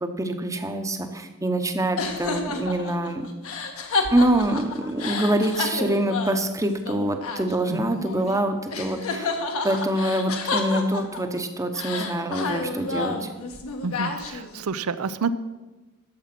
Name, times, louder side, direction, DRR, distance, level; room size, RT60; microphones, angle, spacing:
voice 1, 0.0-3.2 4.1-9.3 9.6-13.3, right 1 dB, 15° right, 7 dB, 0.9 m, -25 dB
sound 1, 2.0-8.4 8.7-11.4 11.7-14.6, left 3 dB, 70° left, 1.3 m, -30 dB
voice 2, 13.8-15.3, right 5 dB, 70° right, 14 dB, 0.5 m, -29 dB
12.5 x 7.2 x 6.0 m, 1.2 s
head